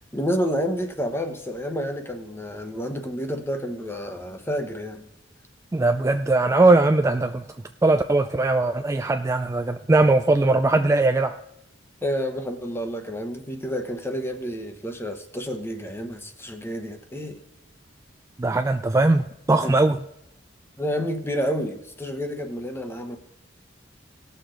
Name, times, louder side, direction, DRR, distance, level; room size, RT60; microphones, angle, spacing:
voice 1, 0.1-5.1 12.0-17.4 19.6-19.7 20.8-23.2, equal, 15° left, 6 dB, 1.0 m, -29 dB
voice 2, 5.7-7.4 7.8-11.4 18.4-20.0, right 2 dB, 15° right, 7 dB, 0.3 m, -20 dB
17.5 x 6.7 x 3.8 m, 0.84 s
head